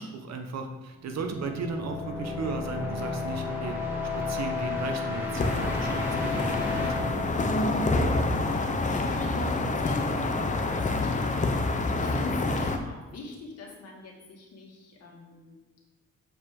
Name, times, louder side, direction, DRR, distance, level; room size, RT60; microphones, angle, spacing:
voice 1, 0.0-3.8 4.1-7.1, right 4 dB, 60° right, 5 dB, 1.0 m, -35 dB
sound 1, 1.0-8.7, left 3 dB, 5° right, 2.1 m, -33 dB
sound 2, 5.3-12.8, left 2 dB, 25° left, 0.7 m, -27 dB
voice 2, 8.1-15.6, left 3 dB, 55° left, -1 dB, 2.0 m, -43 dB
7.2 x 4.8 x 3.7 m, 1.1 s
cardioid pair, 90°, 30 cm